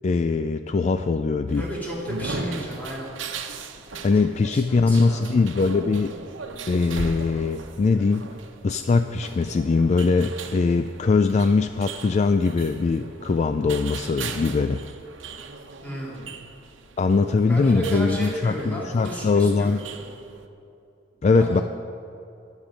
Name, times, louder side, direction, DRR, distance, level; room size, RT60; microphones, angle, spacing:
voice 1, 0.0-1.7 4.0-6.1 6.7-8.3 8.6-14.8 17.0-19.8 21.2-21.6, left 4 dB, 35° left, 9 dB, 0.3 m, -21 dB
sound 1, 1.5-20.5, right 4 dB, 85° right, 1.0 m, -38 dB
voice 2, 1.6-3.1 4.5-5.4 15.8-16.3 17.5-19.9 21.1-21.6, right 1 dB, 10° left, -5 dB, 3.2 m, -33 dB
21.0 x 7.3 x 5.1 m, 2.6 s
head